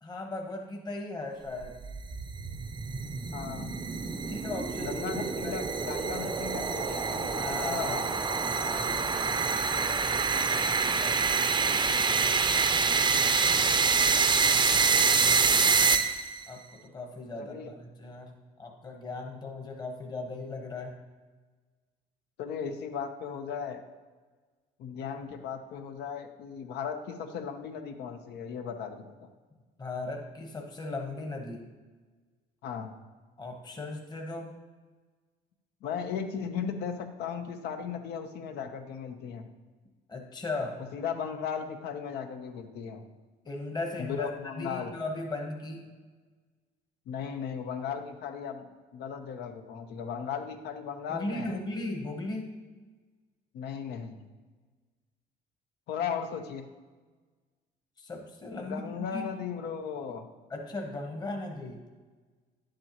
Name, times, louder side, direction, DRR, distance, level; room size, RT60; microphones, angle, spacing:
voice 1, 0.0-1.8 4.3-5.0 5.4-5.6 7.4-10.0 10.7-12.3 15.0-15.8 16.5-21.0 29.8-31.7 33.4-34.6 40.1-40.8 43.4-44.3 44.6-45.9 51.1-52.6 58.0-59.3 60.5-61.8, left 2 dB, 25° left, 2 dB, 1.1 m, -38 dB
sound 1, 1.6-16.4, right 5 dB, 25° right, 0.6 m, -26 dB
voice 2, 3.3-3.7 4.8-8.3 17.4-17.7 22.4-23.8 24.8-29.3 32.6-32.9 35.8-39.5 40.9-43.0 44.0-44.9 47.1-51.6 53.5-54.3 55.9-56.7 58.6-60.3, left 7 dB, 80° left, 7 dB, 0.9 m, -36 dB
10.0 x 7.6 x 3.0 m, 1.4 s
cardioid pair, 110°, 17 cm